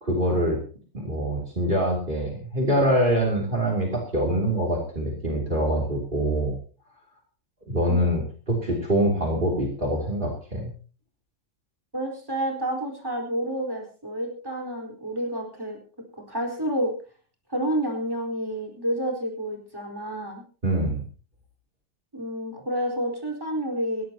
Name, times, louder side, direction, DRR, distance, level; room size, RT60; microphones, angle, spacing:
voice 1, 0.0-0.6 0.9-6.5 7.7-8.2 8.5-10.7 20.6-21.0, right 1 dB, 35° right, 0 dB, 3.3 m, -24 dB
voice 2, 11.9-15.8 16.3-16.9 17.5-20.4 22.1-24.0, right 1 dB, 15° right, 0 dB, 4.5 m, -29 dB
20.0 x 16.5 x 2.9 m, 0.39 s
omnidirectional pair, 1.4 m